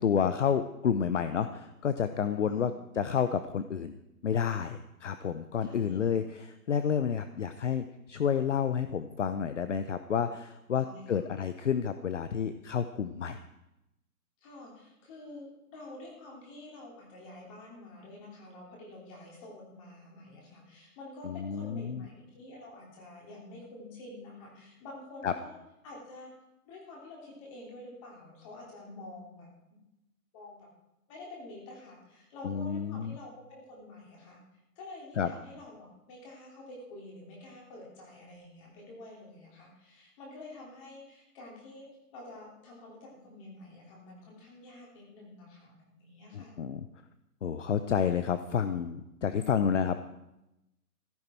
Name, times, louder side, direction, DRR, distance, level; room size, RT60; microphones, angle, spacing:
voice 1, 0.0-4.0 4.2-13.4 21.2-22.0 25.2-25.3 32.4-33.2 35.2-35.3 46.3-46.8 47.4-50.2, left 7 dB, 50° left, 11 dB, 0.8 m, -30 dB
voice 2, 2.4-2.8 5.6-6.0 10.8-11.2 14.4-25.6 25.8-26.3 26.6-29.5 30.3-30.7 31.1-34.4 34.8-41.9 42.1-46.6, left 2 dB, 20° left, -2 dB, 3.2 m, -48 dB
15.0 x 13.5 x 4.5 m, 0.92 s
hypercardioid pair, 165°, 46 cm